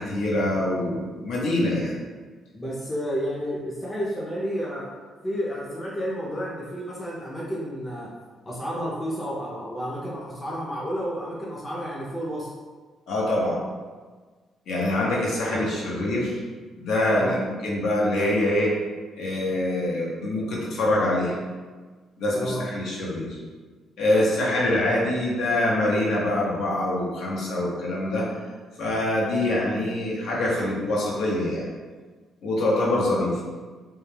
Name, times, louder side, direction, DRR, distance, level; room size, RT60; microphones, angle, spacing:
voice 1, 0.0-1.9 13.1-13.6 14.7-16.4 16.8-18.7 19.2-21.4 22.2-23.4 24.0-28.3 28.8-31.7 32.4-33.3, left 1 dB, 75° left, -4 dB, 0.6 m, -24 dB
voice 2, 2.5-4.9 5.2-8.1 8.5-12.5 17.1-17.4 22.3-22.7, equal, 20° left, -5 dB, 0.5 m, -31 dB
2.2 x 2.1 x 3.1 m, 1.4 s
cardioid pair, 90°, 0 cm